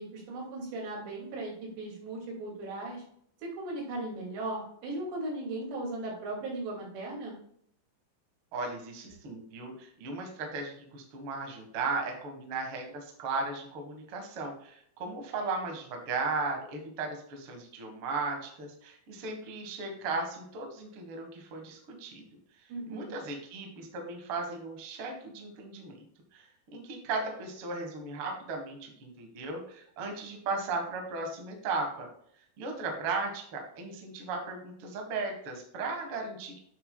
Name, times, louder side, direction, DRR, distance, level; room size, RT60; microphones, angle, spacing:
voice 1, 0.0-3.0 3.4-7.3 22.7-23.1, right 2 dB, 90° right, -2 dB, 4.5 m, -37 dB
voice 2, 8.5-22.2 22.6-26.0 26.3-32.1 32.6-36.6, right 3 dB, 65° right, 3 dB, 1.3 m, -36 dB
9.1 x 6.3 x 2.2 m, 0.66 s
omnidirectional pair, 4.8 m